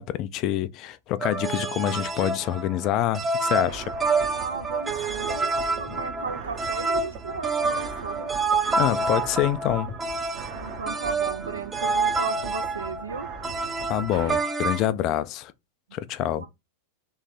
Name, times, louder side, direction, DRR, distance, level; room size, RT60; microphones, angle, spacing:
voice 1, 0.0-3.9 8.7-10.0 13.9-15.5 15.9-16.4, left 12 dB, 40° left, 0.4 m, -26 dB
sound 1, 1.2-14.9, right 3 dB, 15° right, 0.6 m, -28 dB
sound 2, 3.7-14.4, right 5 dB, 40° right, 0.9 m, -40 dB
voice 2, 4.3-8.3 10.5-13.3 16.4-16.5, right 4 dB, 75° right, 0.6 m, -35 dB
3.3 x 3.2 x 3.9 m
figure-of-eight pair, 90°, 0 cm